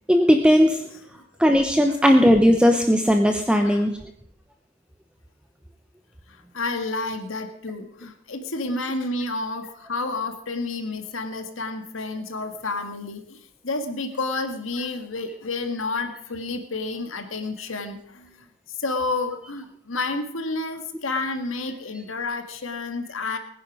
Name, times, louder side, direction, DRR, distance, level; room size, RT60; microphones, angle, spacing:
voice 1, 0.1-0.8 1.4-4.0, equal, 5° right, 4 dB, 0.9 m, -17 dB
voice 2, 3.6-3.9 6.3-23.4, left 3 dB, 90° left, 7 dB, 1.7 m, -30 dB
20.5 x 10.5 x 5.0 m, 0.62 s
head